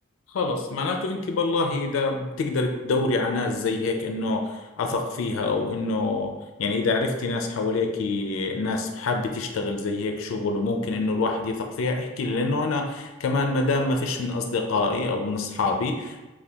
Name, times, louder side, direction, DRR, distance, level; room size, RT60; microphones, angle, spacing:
voice 1, 0.3-6.3 6.6-16.3, left 3 dB, 85° left, 4 dB, 0.4 m, -26 dB
2.7 x 2.2 x 3.3 m, 1.1 s
head